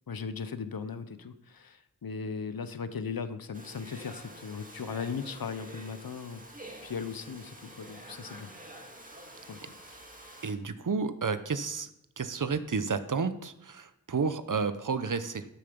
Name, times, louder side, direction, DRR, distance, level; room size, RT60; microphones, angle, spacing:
voice 1, 0.1-6.4 6.8-8.5 9.5-9.7 14.5-14.6, left 5 dB, 90° left, 12 dB, 0.8 m, -38 dB
Domestic sounds home sounds, 3.5-10.5, right 1 dB, 25° right, 1.9 m, -48 dB
voice 2, 10.4-11.9 12.2-15.4, right 5 dB, 60° right, 12 dB, 0.8 m, -31 dB
12.5 x 7.0 x 5.3 m, 0.84 s
wide cardioid pair, 55°, 35 cm